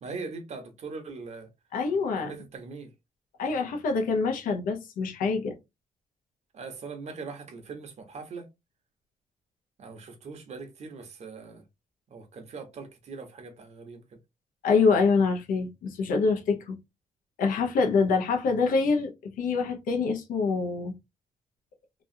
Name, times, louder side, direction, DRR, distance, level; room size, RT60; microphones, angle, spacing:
voice 1, 0.0-1.5 2.1-2.9 6.5-8.5 9.8-11.6 12.1-14.2, right 4 dB, 55° right, 0.9 m, -41 dB
voice 2, 1.7-2.3 3.4-5.5 14.6-16.8 17.4-20.9, left 4 dB, 90° left, 0.8 m, -25 dB
3.0 x 2.4 x 2.6 m
cardioid pair, 120°, 14 cm